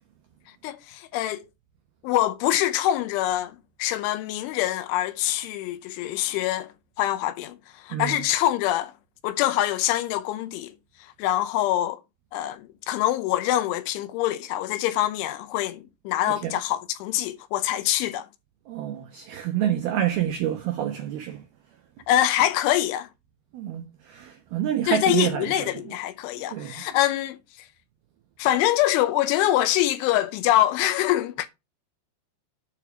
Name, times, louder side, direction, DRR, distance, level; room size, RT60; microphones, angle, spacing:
voice 1, 0.6-1.4 2.0-6.7 7.0-8.9 9.2-10.7 11.0-12.0 12.3-18.3 22.1-23.1 24.9-27.4 28.4-31.5, left 13 dB, 80° left, 3.0 m, -24 dB
voice 2, 18.7-21.4 23.5-25.7 26.5-26.8, right 11 dB, 80° right, 2.2 m, -28 dB
9.0 x 4.9 x 6.9 m
omnidirectional pair, 5.8 m